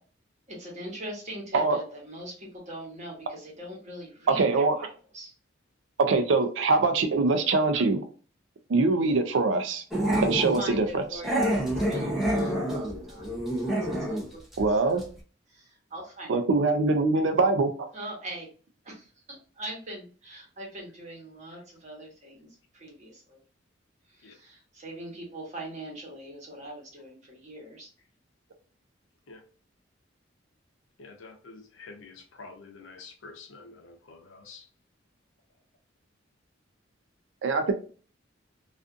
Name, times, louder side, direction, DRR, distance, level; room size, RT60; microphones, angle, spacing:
voice 1, 0.5-5.3 10.1-15.0 15.5-16.3 17.9-18.5 18.8-22.5 22.7-23.4 24.1-27.9, right 1 dB, 40° right, 1.1 m, -42 dB
voice 2, 4.3-4.7 6.1-8.0 8.7-9.8 10.2-11.2 14.6-15.0 16.3-17.9 37.4-37.7, right 3 dB, 70° right, 0.4 m, -23 dB
Growling, 9.9-10.6 11.2-14.3 14.5-14.7 15.0-15.1, right 1 dB, ahead, 0.6 m, -27 dB
voice 3, 31.0-34.7, left 4 dB, 75° left, 0.6 m, -48 dB
2.4 x 2.4 x 2.5 m
head